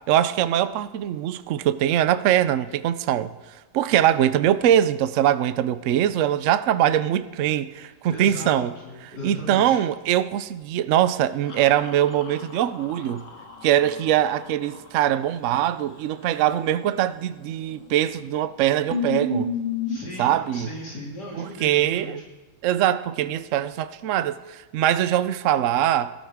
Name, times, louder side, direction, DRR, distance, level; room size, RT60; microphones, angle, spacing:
voice 1, 0.1-3.3 3.7-8.7 9.2-13.2 13.6-19.5 20.2-20.7 21.6-22.2 22.6-26.1, right 11 dB, 65° right, 0.8 m, -22 dB
voice 2, 8.1-9.8 19.8-22.2, left 1 dB, 75° left, 3.4 m, -37 dB
sound 1, 11.5-14.9 17.6-18.1 18.4-18.5 18.9-20.0, left 3 dB, 50° left, 1.7 m, -32 dB
18.5 x 13.0 x 3.6 m
omnidirectional pair, 1.8 m